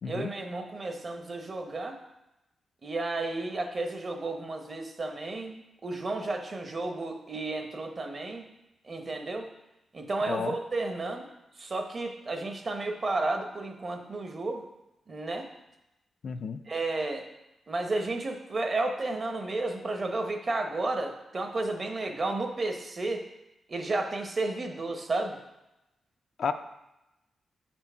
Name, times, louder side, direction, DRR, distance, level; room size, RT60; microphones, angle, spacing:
voice 1, 0.1-2.0 2.8-8.5 8.9-9.5 9.9-11.3 11.6-14.6 15.1-15.5 16.7-17.3 17.7-23.2 23.7-25.4, right 2 dB, 35° right, 4 dB, 0.9 m, -32 dB
voice 2, 16.2-16.6 26.4-26.5, left 6 dB, 60° left, 8 dB, 0.4 m, -31 dB
6.6 x 4.4 x 5.6 m, 0.93 s
wide cardioid pair, 115°, 0 cm